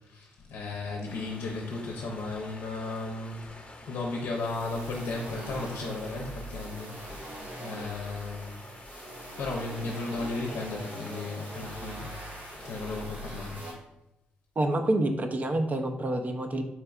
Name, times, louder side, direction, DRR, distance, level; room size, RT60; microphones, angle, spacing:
voice 1, 0.0-3.5 3.8-8.6 9.4-13.6, left 3 dB, 75° left, 0 dB, 0.6 m, -35 dB
sound 1, 1.0-13.0, left 2 dB, 35° left, 0.9 m, -49 dB
sound 2, 4.3-13.7, right 1 dB, 65° right, 1.2 m, -42 dB
voice 2, 14.6-16.6, right 1 dB, 40° right, 6 dB, 0.5 m, -27 dB
4.4 x 3.4 x 2.3 m, 0.93 s
supercardioid pair, 60°, 4 cm